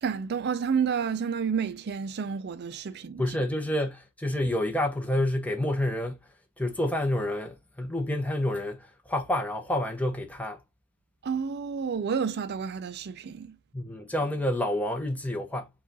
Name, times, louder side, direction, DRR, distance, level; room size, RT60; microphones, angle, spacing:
voice 1, 0.0-3.4 11.2-13.6, right 6 dB, 50° right, 0.4 m, -30 dB
voice 2, 3.2-6.2 6.6-10.6 13.7-15.7, left 1 dB, 5° left, 0.7 m, -28 dB
4.9 x 2.4 x 3.9 m
head